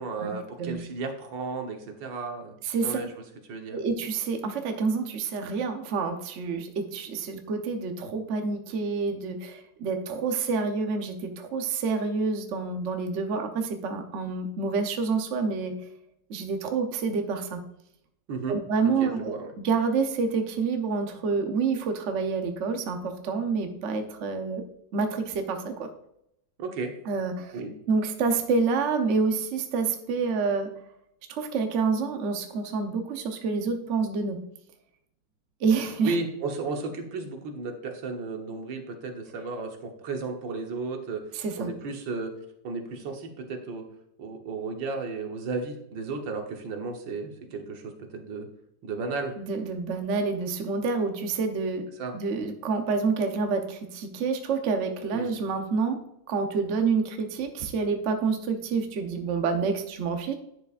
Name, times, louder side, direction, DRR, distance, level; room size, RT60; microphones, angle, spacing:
voice 1, 0.0-2.5 2.8-3.1 3.5-3.8 18.3-18.6 18.8-19.5 26.6-26.9 27.5-27.7 36.0-41.2 41.6-42.3 42.6-43.8 44.2-48.5 48.8-49.4 52.0-52.1 55.1-55.3, right 4 dB, 85° right, 3 dB, 1.9 m, -34 dB
voice 2, 2.6-3.0 3.7-15.7 16.3-17.6 18.5-19.3 19.6-24.6 24.9-25.9 27.1-27.5 27.9-30.7 31.3-34.4 35.6-36.1 41.3-41.7 49.4-51.8 52.1-56.0 56.3-60.3, right 4 dB, 50° right, 5 dB, 1.0 m, -28 dB
10.0 x 6.7 x 2.5 m, 0.77 s
omnidirectional pair, 2.0 m